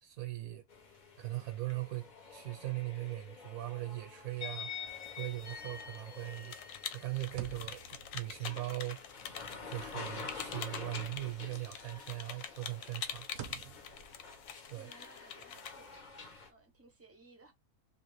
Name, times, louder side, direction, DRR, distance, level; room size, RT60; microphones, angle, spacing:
voice 1, 0.0-0.6 1.2-4.7 5.2-6.5 6.9-9.0 9.7-13.3 14.7-14.9, right 17 dB, 90° right, 1.1 m, -40 dB
sound 1, 0.7-16.5, left 5 dB, 45° left, 0.6 m, -48 dB
sound 2, 4.7-11.2 11.5-16.9, right 8 dB, 70° right, 0.9 m, -54 dB
sound 3, 4.9-16.0, left 8 dB, 70° left, 0.9 m, -46 dB
voice 2, 14.8-17.5, right 3 dB, 15° right, 0.4 m, -61 dB
3.1 x 2.5 x 3.1 m
omnidirectional pair, 1.5 m